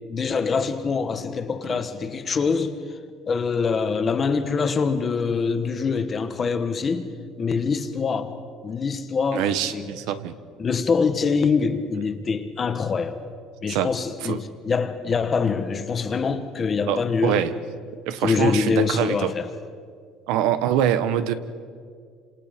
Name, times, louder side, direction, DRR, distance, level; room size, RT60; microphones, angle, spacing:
voice 1, 0.1-2.8 3.3-7.1 7.4-8.3 8.6-9.9 10.6-13.2 13.6-17.4 18.2-19.5, left 5 dB, 20° left, 1.3 m, -24 dB
voice 2, 9.3-10.3 13.6-13.9 14.2-14.4 16.8-17.6 18.1-19.3 20.3-21.3, right 10 dB, 75° right, 1.3 m, -24 dB
30.0 x 27.5 x 5.2 m
cardioid pair, 180°, 0 cm